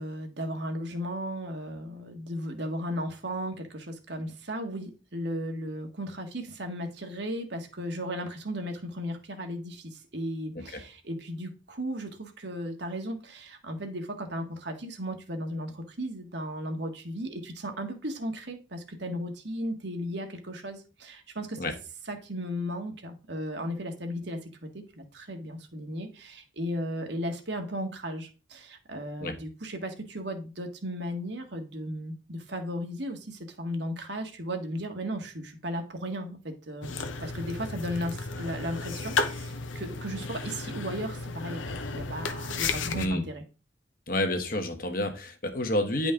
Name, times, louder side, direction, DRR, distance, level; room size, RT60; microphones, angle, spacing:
voice 1, 0.0-21.6 22.1-36.9 37.2-43.4, equal, 65° right, 4 dB, 1.6 m, -35 dB
sound 1, 36.8-43.1, left 4 dB, 85° left, 1.1 m, -33 dB
voice 2, 44.1-46.1, left 1 dB, 45° left, 5 dB, 1.4 m, -29 dB
10.0 x 5.2 x 3.8 m, 0.33 s
head